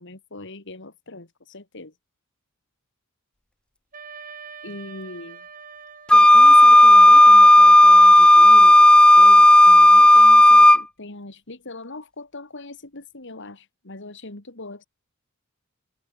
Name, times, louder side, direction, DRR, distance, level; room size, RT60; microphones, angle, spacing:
voice 1, 0.0-1.9 4.2-4.3 4.6-5.5 6.1-8.9 9.2-14.9, left 2 dB, 60° left, 2.8 m, -40 dB
Wind instrument woodwind instrument, 3.9-8.8, right 5 dB, 40° right, 5.1 m, -44 dB
Wind instrument woodwind instrument 2, 6.1-10.8, left 1 dB, 5° left, 0.3 m, -10 dB
head